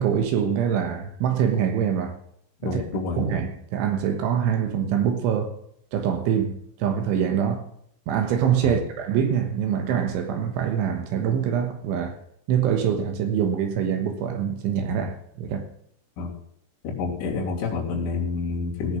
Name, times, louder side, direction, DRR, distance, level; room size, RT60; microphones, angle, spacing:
voice 1, 0.0-2.2 2.6-2.8 3.2-5.6 5.9-7.7 8.1-12.2 12.5-15.7, right 8 dB, 75° right, 3.5 m, -24 dB
voice 2, 2.6-3.2 8.6-8.8 16.2-16.3 16.8-19.0, left 4 dB, 65° left, 5.3 m, -28 dB
17.5 x 6.8 x 6.1 m
omnidirectional pair, 5.8 m